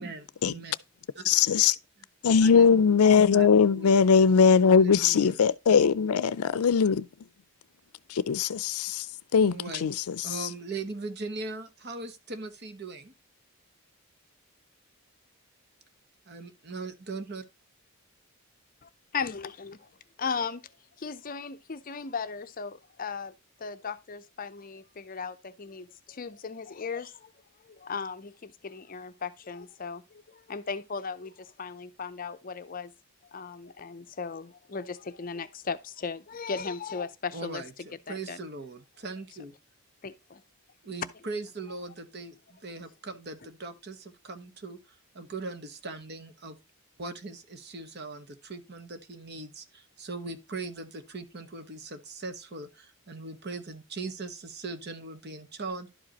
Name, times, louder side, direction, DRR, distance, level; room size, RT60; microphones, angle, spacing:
voice 1, 0.0-0.7 1.2-1.3 1.5-1.6 2.4-3.0 3.3-3.9 4.8-5.4 9.5-9.9 10.2-13.1 16.3-17.4 37.3-39.5 40.8-46.6 47.0-55.9, right 3 dB, 50° right, 1.1 m, -40 dB
voice 2, 1.3-1.7 2.2-7.1 8.1-9.1 9.3-9.5 9.8-10.2, left 6 dB, 90° left, 0.5 m, -20 dB
voice 3, 18.8-19.9 20.2-32.9 33.2-38.5 40.0-40.4 42.7-42.8, left 5 dB, 40° left, 0.6 m, -37 dB
11.5 x 5.0 x 2.9 m
head